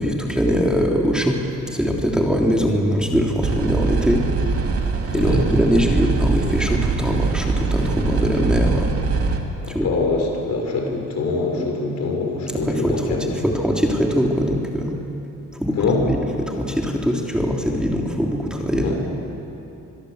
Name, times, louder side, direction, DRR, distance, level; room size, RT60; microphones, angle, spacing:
voice 1, 0.0-1.4 1.7-4.2 5.1-8.9 9.7-9.9 12.7-14.9 15.6-15.7 16.1-19.0, equal, 5° right, -1 dB, 3.2 m, -21 dB
sound 1, 3.4-9.4, right 4 dB, 50° right, 2.9 m, -22 dB
voice 2, 9.6-13.3 15.7-16.0 18.7-19.0, left 3 dB, 60° left, 1 dB, 6.2 m, -24 dB
25.5 x 21.0 x 8.1 m, 3.0 s
cardioid pair, 90°, 30 cm